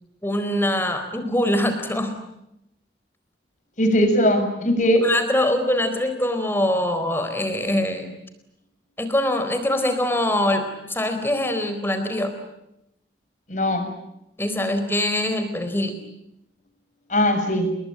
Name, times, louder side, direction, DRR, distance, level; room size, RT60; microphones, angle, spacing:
voice 1, 0.2-2.2 5.0-8.1 9.0-12.3 14.4-16.0, left 1 dB, 15° left, 9 dB, 4.1 m, -23 dB
voice 2, 3.8-5.0 13.5-13.9 17.1-17.7, equal, 45° left, 7 dB, 6.5 m, -19 dB
30.0 x 21.5 x 8.8 m, 0.84 s
head